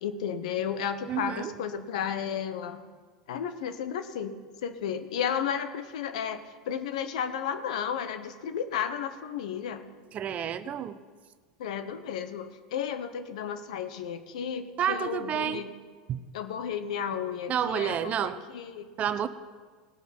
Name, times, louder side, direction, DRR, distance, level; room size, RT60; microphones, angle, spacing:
voice 1, 0.0-2.8 3.3-6.4 6.7-9.8 11.6-15.7 16.3-18.9, left 8 dB, 75° left, 10 dB, 0.9 m, -33 dB
voice 2, 1.1-1.5 10.1-11.0 14.8-15.6 16.1-16.2 17.5-18.4 19.0-19.3, right 9 dB, 40° right, 14 dB, 0.6 m, -29 dB
18.0 x 6.1 x 5.5 m, 1.5 s
hypercardioid pair, 100°, 4 cm